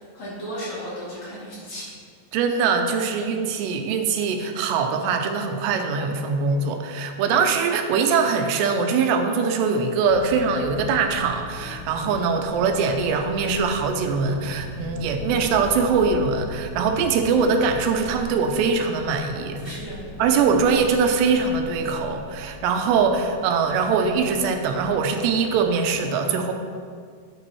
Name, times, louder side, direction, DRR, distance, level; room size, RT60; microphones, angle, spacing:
voice 1, 0.1-1.9 19.5-20.4, equal, 45° left, -8 dB, 3.1 m, -35 dB
voice 2, 2.3-19.6 20.2-26.5, right 5 dB, 85° right, 5 dB, 2.8 m, -22 dB
sound 1, 10.1-25.7, left 2 dB, 70° left, 1.9 m, -39 dB
11.5 x 8.4 x 3.1 m, 2.1 s
omnidirectional pair, 4.9 m